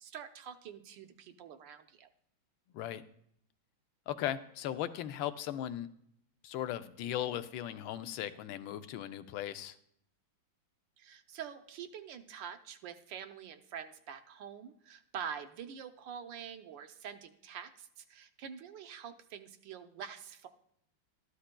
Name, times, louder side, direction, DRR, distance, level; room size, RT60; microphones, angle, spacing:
voice 1, 0.0-2.1 11.0-20.5, right 8 dB, 75° right, 8 dB, 1.3 m, -46 dB
voice 2, 4.1-5.9 6.4-9.8, left 11 dB, 85° left, 10 dB, 1.4 m, -37 dB
13.0 x 11.0 x 2.2 m, 0.70 s
omnidirectional pair, 2.1 m